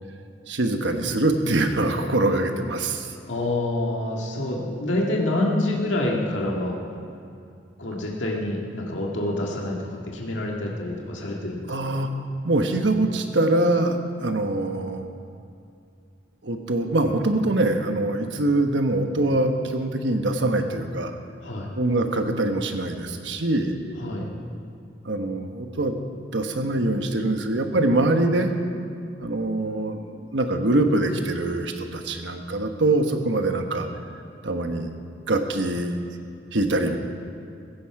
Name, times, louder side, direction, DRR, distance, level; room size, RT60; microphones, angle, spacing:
voice 1, 0.5-3.1 11.7-12.1 12.4-15.1 16.4-21.1 21.7-23.8 25.0-25.9 26.3-28.5 29.2-33.9 34.4-34.9 35.3-36.0 36.5-37.0, right 2 dB, 70° right, 5 dB, 1.3 m, -23 dB
voice 2, 3.3-6.7 7.8-11.7 21.4-21.7 24.0-24.3, left 1 dB, 85° left, -2 dB, 1.9 m, -27 dB
15.5 x 15.5 x 4.8 m, 2.5 s
head